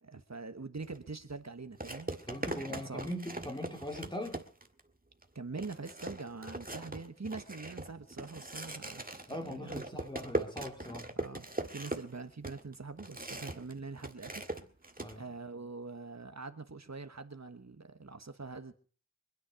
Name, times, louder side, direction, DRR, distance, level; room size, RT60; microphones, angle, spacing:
voice 1, 0.0-3.0 5.3-10.0 10.8-11.5 11.7-14.4 15.1-18.7, right 4 dB, 65° right, 1.3 m, -44 dB
sound 1, 0.8-1.0 1.8-4.8 5.2-5.3 5.6-13.7 14.0-15.1, right 1 dB, 30° right, 1.7 m, -40 dB
voice 2, 2.3-4.4 9.3-11.1 15.0-15.3, left 1 dB, 15° left, 3.2 m, -41 dB
25.0 x 9.8 x 5.1 m
wide cardioid pair, 40°, 30 cm